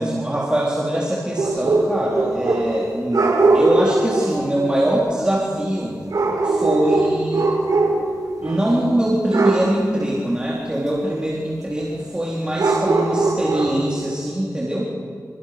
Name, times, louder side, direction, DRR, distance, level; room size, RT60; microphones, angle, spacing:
voice 1, 0.0-6.0 6.4-7.5 8.4-14.9, right 1 dB, 15° right, -6 dB, 4.0 m, -23 dB
sound 1, 1.4-2.8 3.1-4.4 6.1-8.1 8.4-8.7 9.3-9.7 12.6-13.9, right 3 dB, 75° right, 5.5 m, -20 dB
28.0 x 27.5 x 6.1 m, 2.1 s
wide cardioid pair, 90°, 6 cm